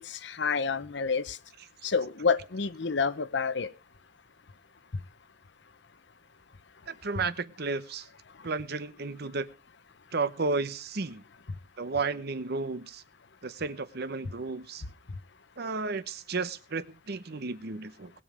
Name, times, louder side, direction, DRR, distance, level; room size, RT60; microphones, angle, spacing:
voice 1, 0.0-1.4 1.8-3.7, left 5 dB, 65° left, 0.8 m, -28 dB
voice 2, 6.9-8.1 8.4-9.5 10.1-11.2 11.8-13.0 13.4-14.8 15.6-18.1, right 3 dB, 60° right, 0.9 m, -33 dB
20.0 x 7.2 x 4.9 m
head